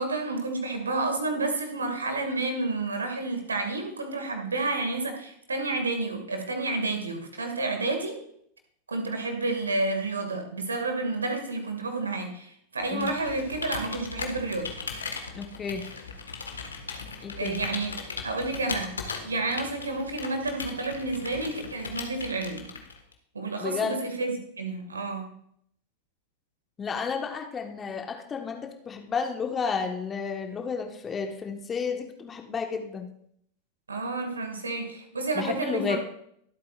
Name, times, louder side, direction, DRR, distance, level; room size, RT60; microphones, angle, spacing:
voice 1, 0.0-8.2 8.9-14.7 17.3-18.9 19.2-22.6 23.3-25.3 33.9-36.0, right 2 dB, 75° right, 5 dB, 2.2 m, -30 dB
Computer keyboard, 12.8-23.1, left 4 dB, 75° left, 1.6 m, -38 dB
voice 2, 15.3-15.8 17.2-17.6 23.6-24.0 26.8-33.1 35.3-36.0, left 5 dB, 20° left, 5 dB, 1.4 m, -32 dB
23.5 x 8.4 x 2.5 m, 0.70 s
figure-of-eight pair, 90°, 0 cm